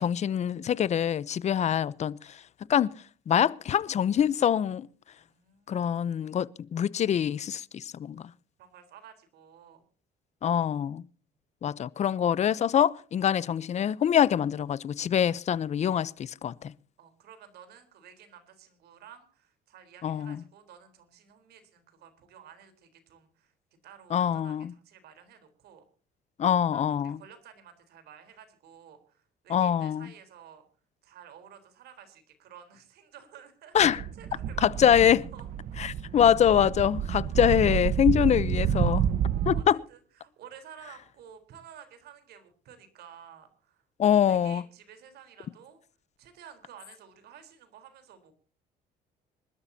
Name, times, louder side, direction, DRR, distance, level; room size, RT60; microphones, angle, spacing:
voice 1, 0.0-2.2 2.7-2.9 3.3-4.9 5.7-8.2 10.4-11.0 11.6-16.7 20.0-20.4 24.1-24.7 26.4-27.2 29.5-30.1 33.7-34.0 34.6-35.2 35.8-39.0 39.5-39.8 44.0-44.6, left 9 dB, 40° left, 0.7 m, -24 dB
voice 2, 5.2-6.3 8.6-9.8 17.0-23.5 23.8-25.8 26.7-30.7 31.0-34.7 35.0-35.5 37.3-37.6 38.6-38.9 39.3-43.8 44.3-45.8 46.2-48.3, right 8 dB, 70° right, 3.9 m, -52 dB
sound 1, 33.8-39.6, right 9 dB, 55° right, 1.0 m, -29 dB
26.0 x 12.5 x 2.8 m
cardioid pair, 110°, 17 cm